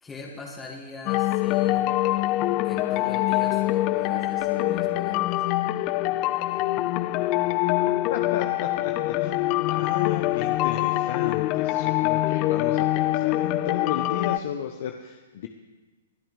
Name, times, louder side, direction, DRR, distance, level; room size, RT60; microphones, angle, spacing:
voice 1, 0.0-1.9 2.6-5.5, left 2 dB, 15° left, -3 dB, 2.4 m, -41 dB
sound 1, 1.1-14.4, left 16 dB, 35° left, 0.4 m, -24 dB
voice 2, 8.1-15.5, left 9 dB, 55° left, 5 dB, 0.9 m, -34 dB
25.5 x 9.0 x 3.5 m, 1.2 s
hypercardioid pair, 130°, 0 cm